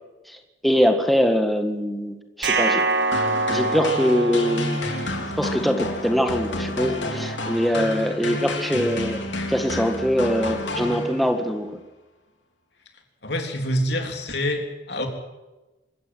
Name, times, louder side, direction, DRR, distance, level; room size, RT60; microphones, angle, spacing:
voice 1, 0.3-2.8 3.5-4.8 5.4-9.2 9.5-11.7, equal, ahead, 4 dB, 1.7 m, -23 dB
sound 1, 2.4-5.5, right 3 dB, 70° right, 2.0 m, -25 dB
sound 2, 3.1-11.5, left 1 dB, 75° left, 3.6 m, -30 dB
voice 2, 13.2-15.1, equal, 60° left, 4 dB, 3.5 m, -26 dB
25.5 x 14.0 x 7.8 m, 1.1 s
head